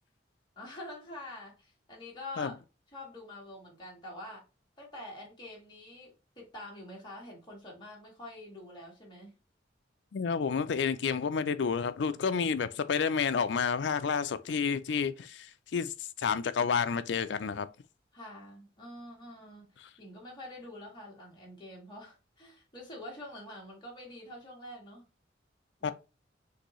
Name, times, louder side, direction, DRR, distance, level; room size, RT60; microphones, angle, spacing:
voice 1, 0.6-2.6 2.9-4.4 4.8-9.4 18.1-25.1 25.8-25.9, left 1 dB, 25° left, 1.9 m, -46 dB
voice 2, 10.1-15.5 15.7-17.7 25.8-25.9, left 6 dB, 65° left, 0.4 m, -30 dB
6.5 x 2.7 x 3.0 m
head